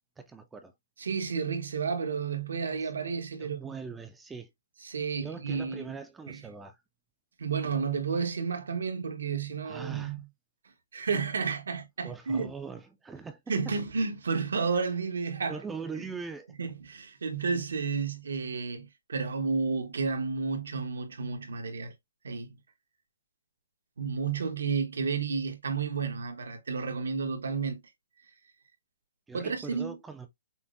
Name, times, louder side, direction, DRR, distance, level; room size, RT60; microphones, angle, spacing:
voice 1, 0.2-0.7 2.8-2.9 3.4-4.5 5.2-6.8 9.6-10.2 12.0-13.7 15.5-16.5 29.3-30.3, right 5 dB, 5° right, 0.3 m, -41 dB
voice 2, 1.0-3.8 4.8-5.9 6.3-6.4 7.4-10.2 10.9-12.5 13.5-15.6 16.0-16.1 16.6-21.9 22.2-22.5 24.0-27.8 29.3-30.0, right 5 dB, 85° right, 1.1 m, -31 dB
5.7 x 2.1 x 2.5 m
hypercardioid pair, 160°, 0 cm